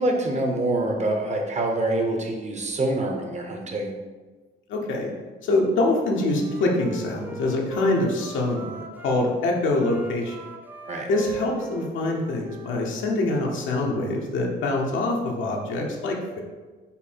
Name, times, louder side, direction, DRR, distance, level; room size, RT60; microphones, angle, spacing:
voice 1, 0.0-3.9 10.9-11.1, right 2 dB, 35° right, 2 dB, 0.9 m, -25 dB
voice 2, 4.7-5.1 5.4-10.4 11.1-16.4, left 2 dB, 75° left, -1 dB, 0.9 m, -25 dB
Wind instrument woodwind instrument, 5.9-9.2 9.7-13.3, right 3 dB, 10° right, 0.4 m, -40 dB
5.4 x 2.2 x 4.3 m, 1.3 s
cardioid pair, 90°, 20 cm